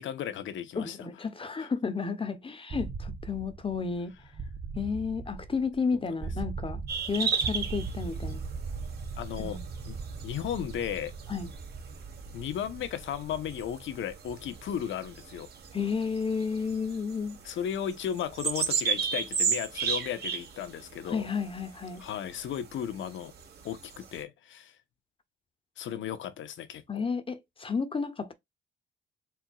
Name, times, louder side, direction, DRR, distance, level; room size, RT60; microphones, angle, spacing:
voice 1, 0.0-1.1 1.6-1.7 9.2-9.6 9.8-10.0 10.2-11.1 12.3-15.5 17.4-21.3 22.0-23.3 23.6-24.8 25.8-27.0, left 9 dB, 75° left, 1.0 m, -35 dB
voice 2, 0.8-4.1 4.7-6.8 7.1-8.5 9.4-9.7 11.3-11.5 15.7-17.4 21.1-22.0 26.9-28.3, left 5 dB, 25° left, 1.0 m, -32 dB
sound 1, 2.7-18.5, right 4 dB, 35° right, 0.8 m, -40 dB
sound 2, 6.9-24.2, right 6 dB, 55° right, 2.1 m, -36 dB
4.5 x 3.5 x 2.4 m
cardioid pair, 90°, 20 cm